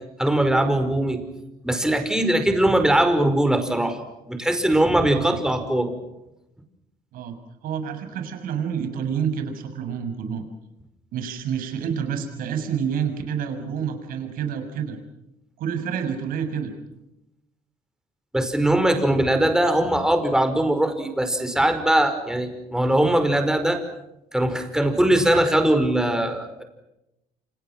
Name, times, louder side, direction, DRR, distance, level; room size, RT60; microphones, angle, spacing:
voice 1, 0.2-1.2 1.6-4.0 4.3-5.9 18.3-23.8 24.3-26.6, right 1 dB, 5° right, 7 dB, 5.2 m, -21 dB
voice 2, 7.6-10.4 11.1-15.0 15.6-16.7, right 7 dB, 75° right, 7 dB, 6.8 m, -28 dB
29.0 x 28.5 x 6.2 m, 0.89 s
cardioid pair, 125°, 15 cm